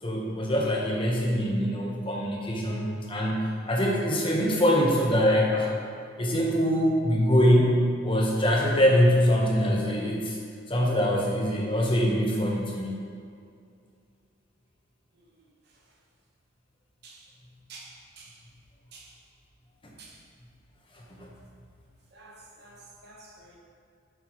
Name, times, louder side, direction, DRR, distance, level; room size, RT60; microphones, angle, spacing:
voice 1, 0.0-5.7 6.2-10.4 10.7-12.9 21.2-21.3, equal, 25° left, -2 dB, 1.0 m, -23 dB
voice 2, 22.6-23.6, right 3 dB, 50° right, -1 dB, 1.1 m, -48 dB
7.8 x 6.7 x 3.0 m, 2.3 s
head